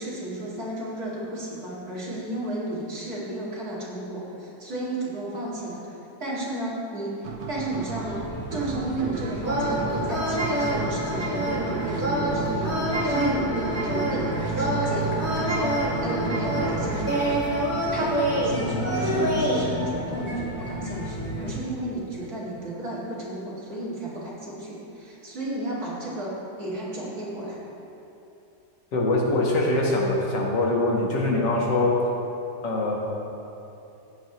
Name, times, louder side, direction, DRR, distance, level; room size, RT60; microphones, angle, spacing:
voice 1, 0.0-5.8 6.2-8.2 8.5-17.2 17.9-27.6, right 1 dB, 60° right, -7 dB, 2.9 m, -33 dB
sound 1, 7.2-18.5, right 4 dB, 80° right, 1.5 m, -36 dB
sound 2, 8.0-21.5, right 1 dB, 5° left, 1.2 m, -32 dB
sound 3, 9.4-19.6, right 1 dB, 10° right, 1.4 m, -27 dB
voice 2, 28.9-32.0 32.6-33.0, left 2 dB, 80° left, -2 dB, 2.1 m, -23 dB
15.0 x 8.9 x 3.0 m, 2.9 s
omnidirectional pair, 1.9 m